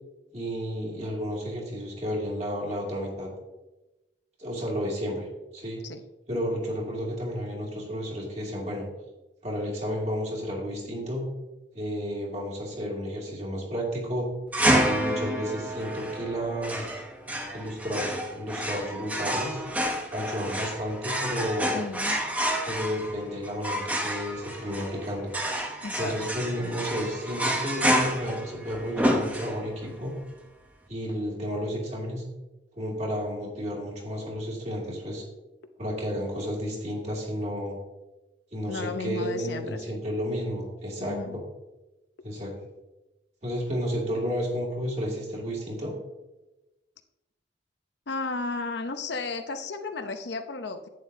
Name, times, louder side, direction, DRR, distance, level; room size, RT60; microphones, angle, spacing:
voice 1, 0.3-3.3 4.4-5.3 5.5-5.8 6.3-8.8 9.4-11.3 11.7-14.3 14.8-16.9 17.5-19.6 20.1-21.9 22.7-25.3 26.0-30.2 30.9-32.2 32.8-35.2 35.8-37.8 38.5-41.4 42.2-42.5 43.4-45.9, equal, 35° right, -3 dB, 2.5 m, -32 dB
sound 1, 14.5-29.9, equal, 10° right, 0.8 m, -29 dB
voice 2, 21.7-22.2 25.8-26.2 38.7-40.0 41.0-41.4 48.1-50.9, left 3 dB, 65° left, 7 dB, 0.7 m, -34 dB
11.0 x 9.0 x 2.7 m, 1.0 s
head